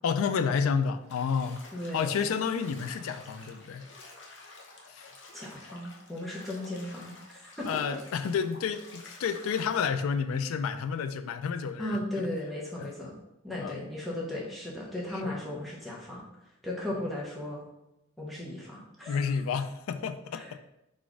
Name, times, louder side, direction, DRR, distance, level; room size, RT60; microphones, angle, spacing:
voice 1, 0.0-1.6 1.9-3.9 4.9-5.1 7.6-12.3 12.8-12.9 13.6-13.9 15.1-15.4 19.1-20.6, left 6 dB, 85° left, 10 dB, 0.3 m, -30 dB
Bathtub (filling or washing), 1.0-9.8, left 3 dB, 60° left, 0.7 m, -50 dB
voice 2, 1.7-2.2 5.3-7.7 11.8-13.1 13.4-16.2 16.6-17.6 18.2-19.2 20.3-20.6, left 1 dB, ahead, -5 dB, 0.8 m, -36 dB
4.0 x 2.5 x 4.6 m, 0.89 s
head